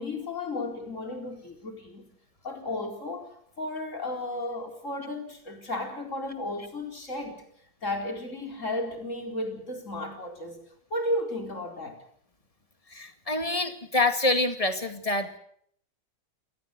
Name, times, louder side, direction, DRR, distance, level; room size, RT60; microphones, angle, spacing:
voice 1, 0.0-2.1 2.4-7.4 7.8-10.6 10.9-12.0, left 1 dB, 40° left, 4.7 m, -34 dB
voice 2, 12.9-15.4, left 2 dB, 20° left, 2.1 m, -26 dB
29.0 x 18.5 x 6.8 m
omnidirectional pair, 2.0 m